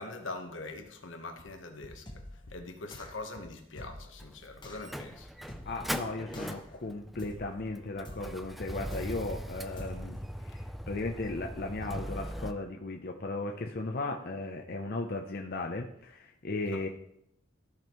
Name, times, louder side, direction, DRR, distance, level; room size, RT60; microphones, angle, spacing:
voice 1, 0.0-2.0 2.5-5.3 16.7-16.8, left 2 dB, 80° left, 1.1 m, -42 dB
sound 1, 2.1-2.5 2.9-3.3 3.8-4.2 4.6-4.9 5.5-5.9 6.3-6.7 7.2-7.6 8.1-8.5 8.9-9.3 9.8-10.2, left 1 dB, 25° left, 1.0 m, -46 dB
Motor vehicle (road), 4.2-12.5, equal, ahead, 0.3 m, -40 dB
voice 2, 5.7-16.9, left 2 dB, 50° left, 0.6 m, -36 dB
13.5 x 5.2 x 3.0 m
head